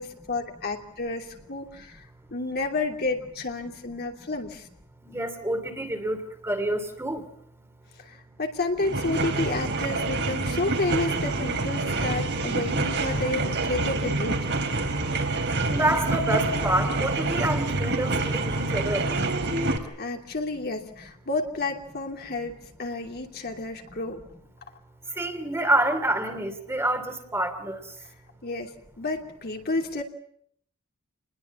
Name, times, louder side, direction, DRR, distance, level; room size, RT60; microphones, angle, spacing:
voice 1, 0.0-2.0 2.3-4.7 8.0-14.5 19.6-24.2 28.4-30.0, left 2 dB, 45° left, 2 dB, 3.0 m, -31 dB
voice 2, 5.0-6.2 6.4-7.2 15.7-19.0 25.2-27.8, right 1 dB, 10° right, 6 dB, 2.8 m, -27 dB
sound 1, 8.8-19.8, right 2 dB, 55° right, 3.6 m, -27 dB
29.5 x 21.0 x 7.3 m, 0.68 s
head